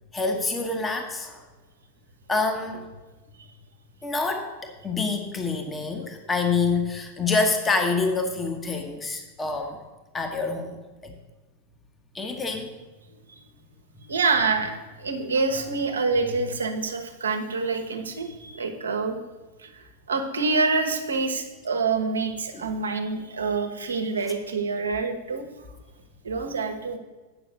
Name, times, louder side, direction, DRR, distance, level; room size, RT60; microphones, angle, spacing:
voice 1, 0.1-1.4 2.3-2.8 4.0-9.8 10.1-10.8 11.0-11.1 12.1-12.7 22.5-22.7, left 4 dB, 15° left, 4 dB, 1.1 m, -27 dB
voice 2, 14.0-19.2 19.6-25.4 26.2-27.0, right 4 dB, 70° right, 6 dB, 1.1 m, -26 dB
8.9 x 5.9 x 6.6 m, 1.2 s
figure-of-eight pair, 90°, 0 cm